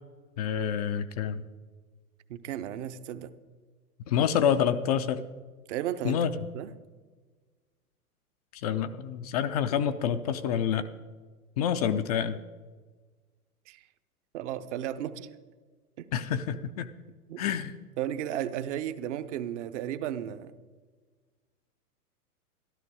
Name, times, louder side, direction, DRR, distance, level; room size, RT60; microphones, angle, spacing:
voice 1, 0.4-1.4 4.1-5.2 6.0-6.3 8.5-10.9 11.6-12.4 16.1-16.9 17.4-17.8, left 8 dB, 30° left, 0.4 m, -27 dB
voice 2, 2.3-3.3 5.7-6.2 6.5-6.7 13.7-13.8 14.3-15.3 16.0-16.1 17.3-17.4 18.0-20.5, right 11 dB, 50° right, 0.9 m, -34 dB
13.0 x 12.5 x 4.8 m
figure-of-eight pair, 100°, 45 cm